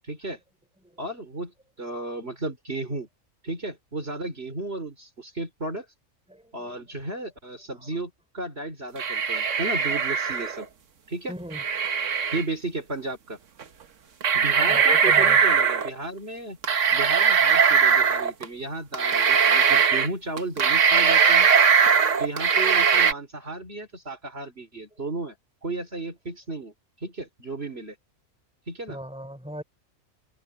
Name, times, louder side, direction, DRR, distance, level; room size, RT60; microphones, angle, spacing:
voice 1, 0.0-0.4 1.0-3.1 3.4-5.9 6.5-10.7 11.1-11.3 12.3-13.4 14.3-16.6 16.9-21.5 22.2-25.4 25.6-26.7 27.0-28.0 28.7-29.0, right 2 dB, 45° right, 4.2 m, -34 dB
voice 2, 6.3-6.7 11.3-11.6 14.7-15.4 28.9-29.6, right 1 dB, 5° right, 4.9 m, -37 dB
sound 1, 9.0-10.6 11.5-12.4 13.6-13.7 14.2-15.9 16.6-18.4 18.9-20.1 20.4-23.1, right 6 dB, 60° right, 1.5 m, -20 dB
omnidirectional pair, 1.5 m